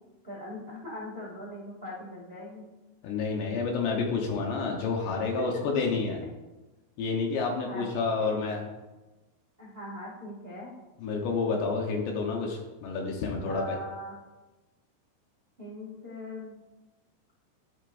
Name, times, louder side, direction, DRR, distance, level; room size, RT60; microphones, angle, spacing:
voice 1, 0.2-2.7 7.6-7.8 8.2-8.3 9.6-10.7 13.4-14.1 15.6-16.5, left 1 dB, 70° right, -6 dB, 0.5 m, -41 dB
voice 2, 3.0-6.2 7.0-8.6 11.0-13.8, left 4 dB, 70° left, 0 dB, 2.9 m, -29 dB
11.5 x 11.0 x 2.6 m, 1.1 s
omnidirectional pair, 5.9 m